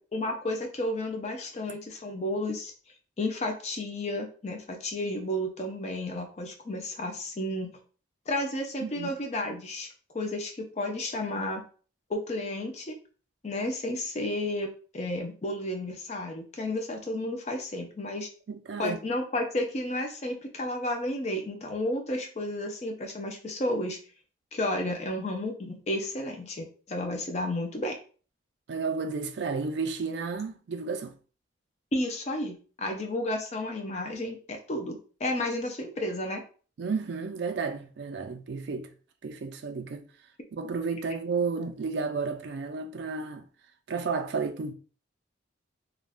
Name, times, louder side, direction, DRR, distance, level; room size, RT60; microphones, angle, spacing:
voice 1, 0.1-2.7 3.2-7.8 8.3-9.9 10.1-11.6 12.1-13.0 13.4-18.3 18.8-24.0 24.5-28.0 31.9-36.4, left 1 dB, 35° left, 0.5 m, -32 dB
voice 2, 8.8-9.1 18.5-19.0 28.7-31.2 36.8-38.9 39.2-40.0 40.5-43.5 43.9-44.7, right 4 dB, 60° right, 0.3 m, -32 dB
2.4 x 2.2 x 3.4 m
head